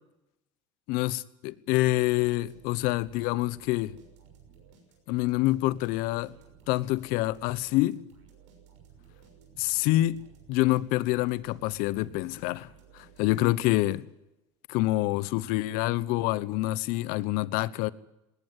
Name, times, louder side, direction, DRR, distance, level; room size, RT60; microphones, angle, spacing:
voice 1, 0.9-3.9 5.1-6.3 6.7-8.0 9.6-10.2 10.5-12.7 12.9-14.1 14.7-17.9, left 17 dB, 70° left, 1.0 m, -26 dB
sound 1, 2.1-14.3, right 7 dB, 90° right, 6.3 m, -56 dB
20.0 x 17.5 x 9.2 m
supercardioid pair, 90°, 15 cm